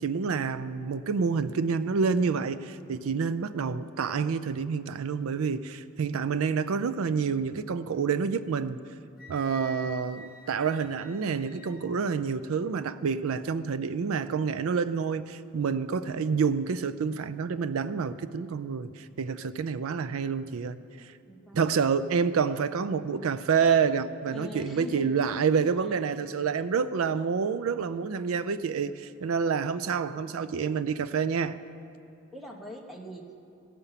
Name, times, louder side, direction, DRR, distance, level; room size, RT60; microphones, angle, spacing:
voice 1, 0.0-8.8 9.3-21.1 21.5-31.6, right 5 dB, 80° right, 0.4 m, -28 dB
Wind instrument woodwind instrument, 9.2-12.0, equal, 45° left, 0.9 m, -47 dB
voice 2, 21.3-21.7 24.3-25.2 25.8-25.9 32.3-33.4, left 2 dB, ahead, 0.9 m, -42 dB
16.5 x 6.8 x 5.7 m
head